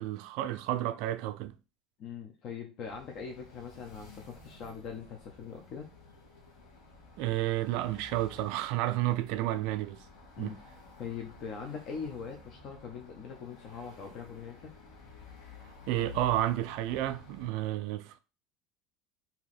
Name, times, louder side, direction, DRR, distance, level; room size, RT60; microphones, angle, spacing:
voice 1, 0.0-1.5 7.2-10.0 10.4-10.5 15.9-18.2, right 14 dB, 70° right, 0.4 m, -31 dB
voice 2, 2.0-5.9 10.4-10.6 11.0-14.7, left 6 dB, 55° left, 0.7 m, -42 dB
sound 1, 2.8-17.5, left 4 dB, 80° left, 1.3 m, -52 dB
2.8 x 2.8 x 4.1 m
hypercardioid pair, 85°, 0 cm